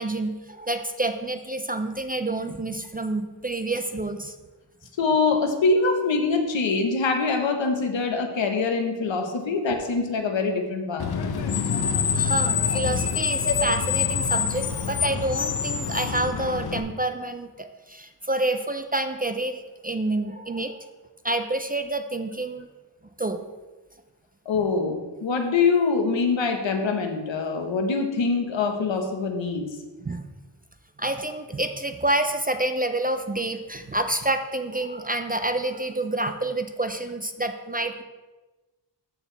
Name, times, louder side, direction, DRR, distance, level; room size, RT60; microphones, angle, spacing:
voice 1, 0.0-4.3 12.1-20.9 21.2-22.7 23.2-23.4 30.1-30.3 31.0-38.0, right 2 dB, 20° right, 7 dB, 0.3 m, -28 dB
voice 2, 5.0-11.0 13.4-13.5 24.4-29.7, left 4 dB, 85° left, 4 dB, 1.2 m, -24 dB
Screech, 11.0-16.8, left 7 dB, 60° left, 0.7 m, -26 dB
13.5 x 4.6 x 3.3 m, 1.2 s
wide cardioid pair, 155°, 44 cm